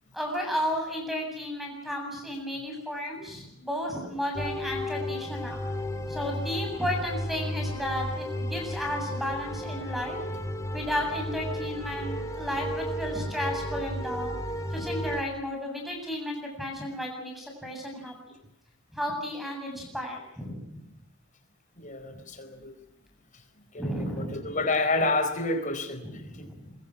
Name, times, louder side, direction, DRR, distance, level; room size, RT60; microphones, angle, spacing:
voice 1, 0.1-5.6 6.1-10.2 10.7-14.4 14.7-18.4 18.9-20.8 22.1-22.2 23.8-24.4 26.0-26.8, equal, ahead, 2 dB, 7.6 m, -33 dB
sound 1, 4.3-15.2, equal, 15° left, 3.0 m, -33 dB
voice 2, 21.8-22.8 23.7-26.5, left 2 dB, 35° left, 8 dB, 4.4 m, -29 dB
25.5 x 23.0 x 6.1 m, 0.80 s
head